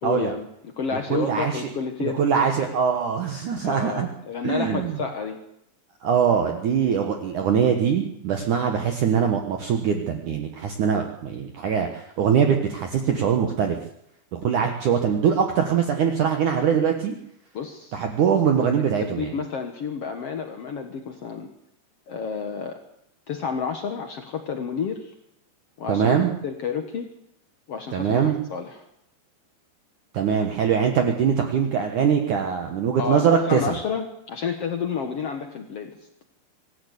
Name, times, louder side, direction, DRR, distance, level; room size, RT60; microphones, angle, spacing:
voice 1, 0.0-2.2 3.6-5.4 17.5-17.9 18.6-18.7 19.0-21.5 22.1-22.8 23.3-25.1 25.8-26.1 26.4-27.1 27.7-28.8 33.0-36.0, left 6 dB, 75° left, 5 dB, 1.3 m, -30 dB
voice 2, 1.1-1.6 2.0-4.1 4.4-5.0 6.0-13.8 14.3-17.1 17.9-19.4 25.9-26.3 27.9-28.4 30.1-33.8, right 7 dB, 65° right, 4 dB, 2.2 m, -22 dB
25.0 x 13.0 x 8.3 m, 0.79 s
omnidirectional pair, 5.2 m